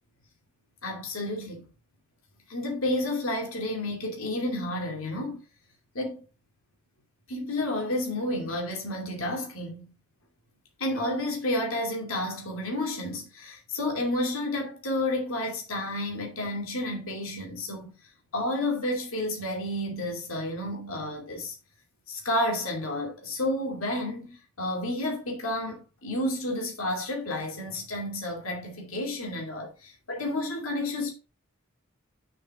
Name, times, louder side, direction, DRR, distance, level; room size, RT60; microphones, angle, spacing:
voice 1, 0.8-1.7 2.5-5.4 5.9-6.2 7.3-9.9 10.8-17.9 18.3-21.5 22.1-31.1, left 1 dB, 65° left, 2.7 m, -31 dB
6.8 x 5.8 x 3.7 m
head